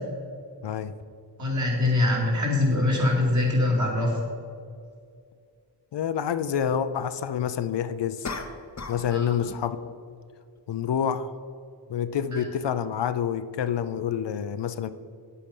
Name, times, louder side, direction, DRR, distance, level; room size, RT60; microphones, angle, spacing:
voice 1, 0.6-0.9 5.9-8.3 8.9-9.9 10.7-11.3 11.9-14.9, left 8 dB, 70° left, 12 dB, 0.6 m, -28 dB
voice 2, 1.4-4.2 9.1-9.3 12.3-12.4, left 2 dB, 40° right, -3 dB, 2.8 m, -23 dB
sound 1, 4.2-4.3 8.2-9.1 9.4-9.7, left 3 dB, 40° left, 0.9 m, -36 dB
9.9 x 8.4 x 5.3 m, 2.3 s
wide cardioid pair, 135°, 43 cm